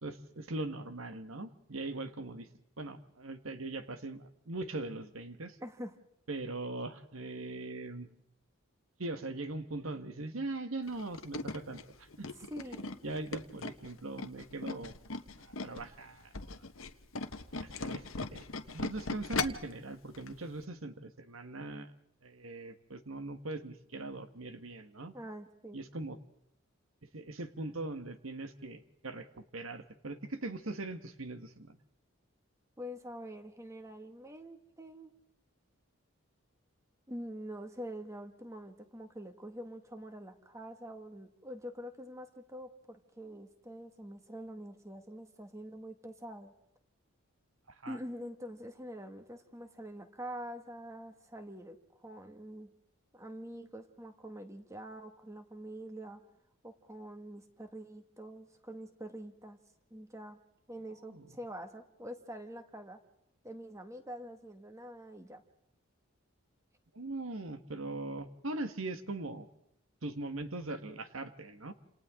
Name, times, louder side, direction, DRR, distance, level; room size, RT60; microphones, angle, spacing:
voice 1, 0.0-2.5 2.8-5.6 6.3-8.1 9.0-12.3 13.0-15.0 15.4-16.5 17.5-18.0 18.3-18.4 18.7-21.9 22.2-25.1 25.7-26.2 27.1-29.3 29.5-31.8 47.8-48.0 61.1-61.2 66.9-69.5 70.0-71.7, right 2 dB, 80° right, 9 dB, 1.5 m, -40 dB
voice 2, 5.6-5.9 12.4-13.0 25.1-25.8 32.8-35.1 37.1-46.5 47.9-51.8 52.0-52.7 53.1-56.2 56.6-59.6 59.9-60.4 60.7-63.0 63.4-65.4, equal, 15° right, 6 dB, 1.8 m, -45 dB
Tools, 10.9-15.9 16.2-19.7 20.1-20.3 20.6-20.7, left 3 dB, 80° left, 1.4 m, -38 dB
29.0 x 28.0 x 3.7 m, 0.76 s
head